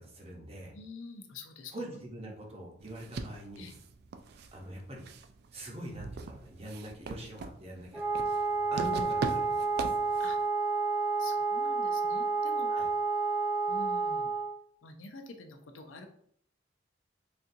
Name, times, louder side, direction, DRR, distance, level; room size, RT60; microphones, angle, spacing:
voice 1, 0.0-0.7 1.7-3.7 4.5-5.1 5.5-9.9 12.7-12.9, right 1 dB, 30° right, -1 dB, 0.8 m, -44 dB
voice 2, 0.7-1.7 2.3-2.4 3.6-3.7 10.2-10.4 11.2-12.7 13.7-14.3 14.8-16.1, left 3 dB, 85° left, 5 dB, 0.6 m, -47 dB
sound 1, 2.8-10.5, right 4 dB, 55° right, 0.3 m, -41 dB
Wind instrument woodwind instrument, 7.9-14.6, right 4 dB, 5° right, 1.0 m, -30 dB
4.1 x 2.5 x 2.6 m, 0.64 s
head